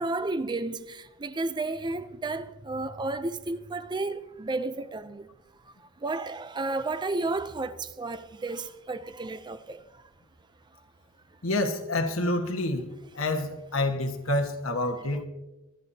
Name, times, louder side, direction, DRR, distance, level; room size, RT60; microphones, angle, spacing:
voice 1, 0.0-5.3 6.0-9.8, right 2 dB, 20° right, 0.5 m, -32 dB
voice 2, 11.4-12.8 13.1-15.3, left 1 dB, 70° left, 1.5 m, -28 dB
24.5 x 10.5 x 2.8 m
head